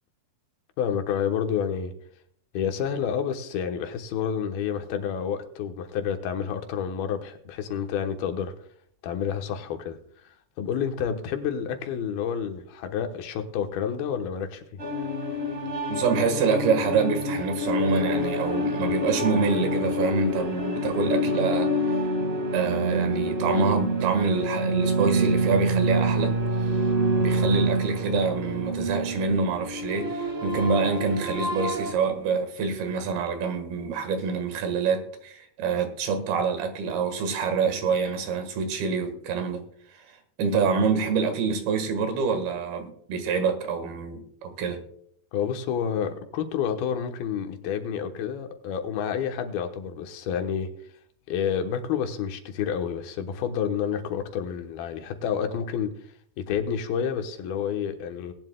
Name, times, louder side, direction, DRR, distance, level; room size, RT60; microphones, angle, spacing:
voice 1, 0.8-1.9 2.5-8.5 9.0-10.0 10.6-14.8 45.3-50.7 51.3-55.9 56.4-58.3, left 8 dB, 80° left, 3.0 m, -29 dB
sound 1, 14.8-31.9, right 1 dB, 75° right, 0.6 m, -27 dB
voice 2, 15.9-21.7 22.5-26.3 26.6-26.8 27.2-39.6 39.9-44.8, right 5 dB, 90° right, 3.6 m, -26 dB
20.0 x 11.0 x 2.3 m
omnidirectional pair, 4.3 m